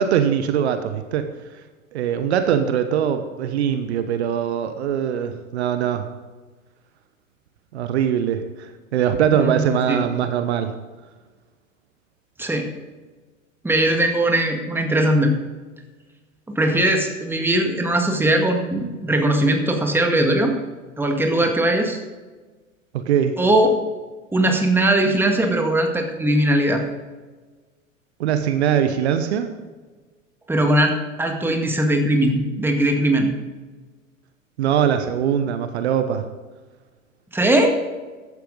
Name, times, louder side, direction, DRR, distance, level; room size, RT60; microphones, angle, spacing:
voice 1, 0.0-1.6 1.9-6.1 7.7-10.7 22.9-23.4 28.2-29.5 34.6-36.3, right 8 dB, 55° right, 9 dB, 1.1 m, -22 dB
voice 2, 9.3-10.0 12.4-12.7 13.6-15.4 16.5-20.6 21.0-22.0 23.4-23.8 24.3-26.8 30.5-33.3 37.3-37.8, right 1 dB, 5° right, 3 dB, 1.9 m, -20 dB
14.5 x 11.5 x 3.9 m, 1.3 s
figure-of-eight pair, 90°, 39 cm